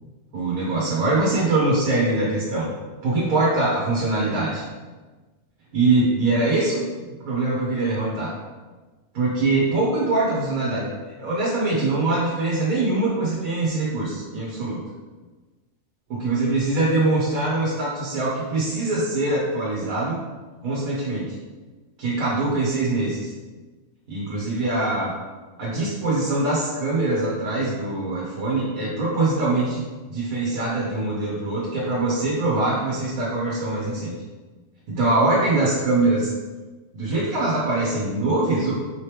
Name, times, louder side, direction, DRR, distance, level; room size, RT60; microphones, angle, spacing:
voice 1, 0.3-2.7 3.0-4.6 5.7-6.8 7.2-8.3 9.1-10.9 11.2-14.8 16.1-20.2 20.6-21.3 22.0-23.3 24.1-25.1 25.6-34.1 34.9-36.3 36.9-38.7, right 2 dB, 80° right, -5 dB, 1.4 m, -23 dB
5.0 x 3.0 x 3.3 m, 1.3 s
omnidirectional pair, 1.4 m